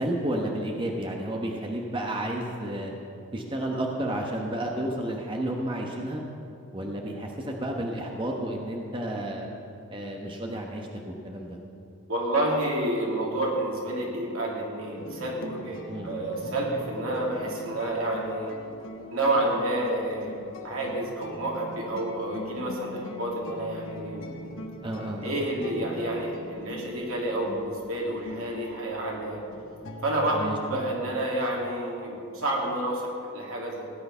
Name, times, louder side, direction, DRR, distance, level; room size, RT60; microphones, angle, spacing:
voice 1, 0.0-2.9 3.3-6.2 6.7-9.5 9.9-10.9 11.2-11.6 15.9-16.1 24.8-25.2 30.3-30.8, right 1 dB, 25° right, 0 dB, 1.0 m, -31 dB
voice 2, 12.1-18.5 19.1-20.4 20.6-24.3 25.2-29.4 30.0-33.8, right 1 dB, 85° right, -2 dB, 2.9 m, -29 dB
sound 1, 15.0-30.5, left 1 dB, 65° left, 1.3 m, -42 dB
17.0 x 9.5 x 5.6 m, 2.6 s
head